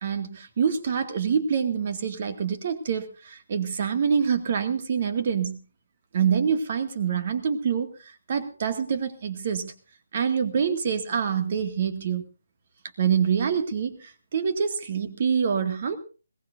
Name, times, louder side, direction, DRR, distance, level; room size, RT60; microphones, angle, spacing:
voice 1, 0.0-5.6 6.1-9.7 10.1-12.2 13.0-16.0, right 7 dB, 40° right, 8 dB, 2.2 m, -26 dB
21.5 x 18.5 x 2.7 m, 0.34 s
figure-of-eight pair, 145°, 0 cm